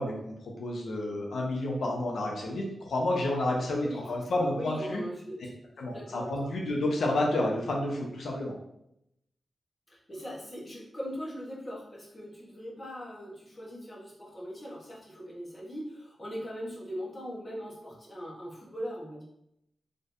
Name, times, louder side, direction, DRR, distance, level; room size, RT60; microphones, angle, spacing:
voice 1, 0.0-5.0 5.8-8.5, left 1 dB, 85° left, -1 dB, 0.9 m, -30 dB
voice 2, 3.8-5.5 5.9-6.5 9.9-19.2, equal, 30° left, -4 dB, 1.2 m, -40 dB
4.3 x 3.3 x 2.6 m, 0.79 s
wide cardioid pair, 115°, 0 cm